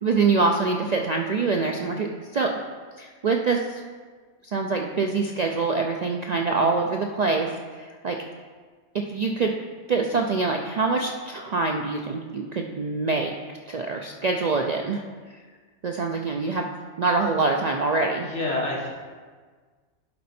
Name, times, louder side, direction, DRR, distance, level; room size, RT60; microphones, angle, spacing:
voice 1, 0.0-2.5 3.0-3.8 4.5-7.5 7.8-8.2 8.9-9.5 9.9-13.3 13.7-15.0 15.8-16.6 17.0-18.3, right 4 dB, 55° right, 2 dB, 0.4 m, -25 dB
voice 2, 18.2-18.9, left 2 dB, 75° left, -3 dB, 1.7 m, -28 dB
11.0 x 4.2 x 4.2 m, 1.5 s
omnidirectional pair, 1.2 m